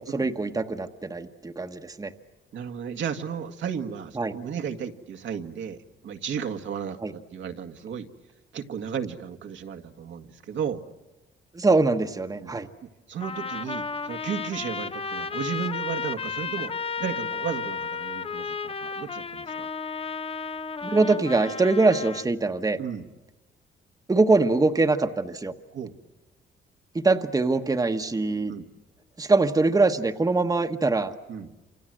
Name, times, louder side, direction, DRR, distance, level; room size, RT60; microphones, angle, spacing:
voice 1, 0.0-2.1 4.2-4.3 7.0-7.1 11.5-12.7 20.8-22.8 24.1-25.5 26.9-28.5 29.2-31.1, right 3 dB, 20° right, 6 dB, 1.3 m, -23 dB
voice 2, 2.5-8.1 8.5-10.8 12.4-12.6 12.8-19.7 22.8-23.1 25.7-26.0 28.5-28.6 31.3-31.5, right 7 dB, 70° right, 5 dB, 1.9 m, -34 dB
Trumpet, 13.2-22.3, left 5 dB, 30° left, 0.9 m, -33 dB
28.0 x 27.0 x 7.8 m, 1.0 s
cardioid pair, 90°, 20 cm